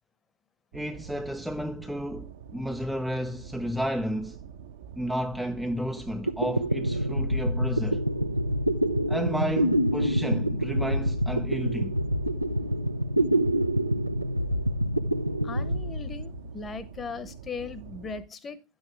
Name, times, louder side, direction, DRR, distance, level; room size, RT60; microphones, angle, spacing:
voice 1, 0.7-4.4 5.0-8.0 9.1-12.0, equal, ahead, 0.5 m, -32 dB
sound 1, 0.7-18.2, right 8 dB, 55° right, 0.9 m, -45 dB
sound 2, 6.0-6.1 6.3-16.7, equal, 85° right, 0.6 m, -26 dB
voice 2, 15.4-18.6, left 5 dB, 20° left, 1.0 m, -38 dB
11.5 x 8.1 x 3.3 m
figure-of-eight pair, 90°, 0 cm